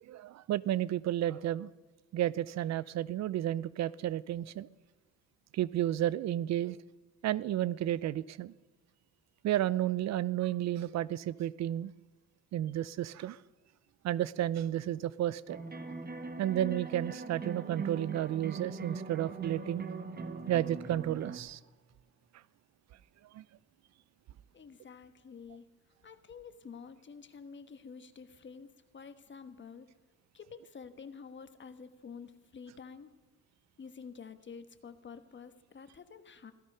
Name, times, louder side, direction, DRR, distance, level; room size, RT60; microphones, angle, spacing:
voice 1, 0.1-1.7 2.1-4.7 5.5-6.8 7.2-8.5 9.4-11.9 12.5-13.4 14.0-15.6 16.4-19.8 20.5-21.6 23.3-23.4, right 12 dB, 60° right, 21 dB, 0.5 m, -32 dB
sound 1, 15.5-21.4, right 4 dB, 30° right, 1.5 m, -41 dB
voice 2, 24.5-25.7 26.0-29.9 30.3-33.1 33.8-36.5, left 6 dB, 40° left, 10 dB, 1.3 m, -49 dB
16.5 x 14.0 x 5.5 m, 1.3 s
cardioid pair, 90°, 30 cm